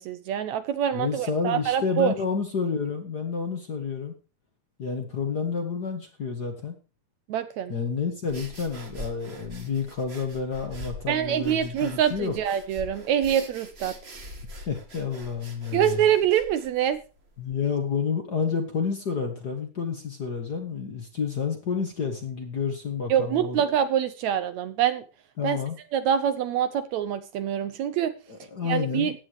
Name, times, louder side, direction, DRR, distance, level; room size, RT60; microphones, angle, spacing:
voice 1, 0.0-2.1 7.3-7.7 11.1-14.0 15.7-17.0 23.1-25.0 25.4-25.6 25.9-28.1 28.6-29.1, right 9 dB, 75° right, 12 dB, 1.9 m, -25 dB
voice 2, 0.9-4.1 4.8-6.8 7.7-12.3 14.7-16.0 17.4-23.6 25.4-25.8 28.3-29.1, left 6 dB, 40° left, 4 dB, 1.6 m, -29 dB
sound 1, 8.3-17.5, equal, 35° right, 1.0 m, -43 dB
15.5 x 10.0 x 3.1 m, 0.33 s
omnidirectional pair, 3.6 m